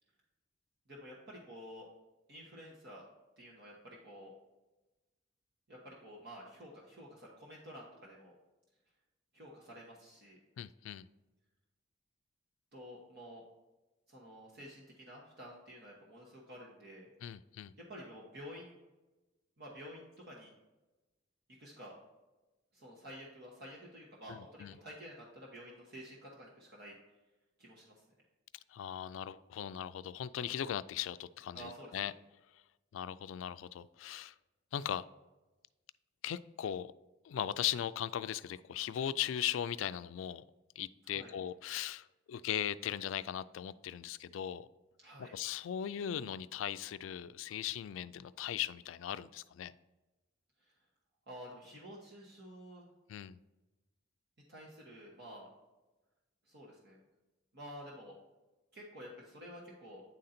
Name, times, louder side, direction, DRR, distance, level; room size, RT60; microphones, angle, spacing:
voice 1, 0.9-1.9 2.3-3.1 3.4-4.3 5.7-8.3 9.3-10.4 12.7-13.4 14.1-17.1 17.9-18.7 19.6-20.5 21.6-21.9 22.7-27.0 27.6-28.0 31.5-32.0 41.1-41.3 45.0-45.3 50.6-50.7 51.3-52.9 54.5-55.5 56.4-57.0 57.5-58.2 58.7-60.0, equal, 55° right, -3 dB, 1.2 m, -50 dB
voice 2, 10.6-11.1 17.2-17.7 24.3-24.8 28.7-32.1 32.9-34.3 34.7-35.0 36.2-36.9 37.2-40.4 40.8-44.7 45.2-49.7 53.1-53.4, left 10 dB, 80° left, 15 dB, 0.3 m, -38 dB
9.2 x 3.9 x 4.2 m, 1.1 s
head